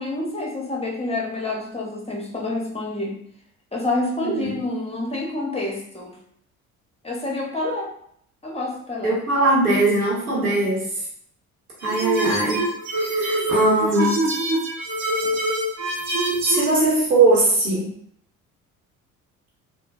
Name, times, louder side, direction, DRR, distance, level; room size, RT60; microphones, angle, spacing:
voice 1, 0.0-3.2 3.7-6.2 7.0-7.9 8.4-9.1, left 2 dB, 15° left, -2 dB, 0.8 m, -28 dB
voice 2, 4.2-4.6 9.0-10.8 11.8-12.6 13.0-14.1 16.4-17.9, right 2 dB, 90° right, -5 dB, 0.9 m, -20 dB
sound 1, 11.8-16.7, right 1 dB, 40° right, 0.7 m, -24 dB
3.0 x 2.0 x 2.4 m, 0.66 s
figure-of-eight pair, 50°, 43 cm